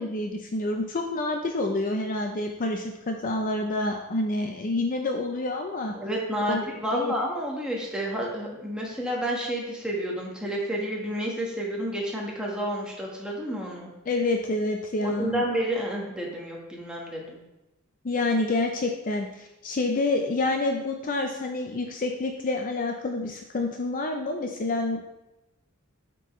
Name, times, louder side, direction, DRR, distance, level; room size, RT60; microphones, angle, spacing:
voice 1, 0.0-5.9 6.5-6.6 6.9-7.1 14.1-15.4 18.0-25.0, left 2 dB, 40° left, 3 dB, 0.5 m, -28 dB
voice 2, 5.9-13.9 15.0-17.4, equal, 5° right, -3 dB, 1.3 m, -30 dB
8.0 x 4.5 x 3.1 m, 0.94 s
head